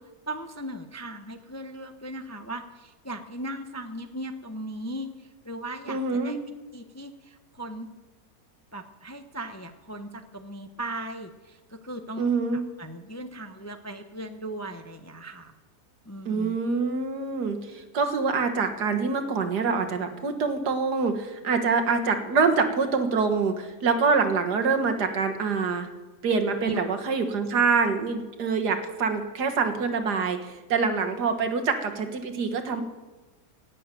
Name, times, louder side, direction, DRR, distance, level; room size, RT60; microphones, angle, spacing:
voice 1, 0.3-6.4 6.7-7.9 8.7-15.5 16.1-16.6 26.6-26.8 27.5-27.6, right 1 dB, 15° left, 7 dB, 0.5 m, -38 dB
voice 2, 5.9-6.4 12.2-12.6 16.3-25.9 26.2-32.8, right 4 dB, 80° right, 6 dB, 2.0 m, -25 dB
17.5 x 7.7 x 9.1 m, 1.2 s
omnidirectional pair, 1.7 m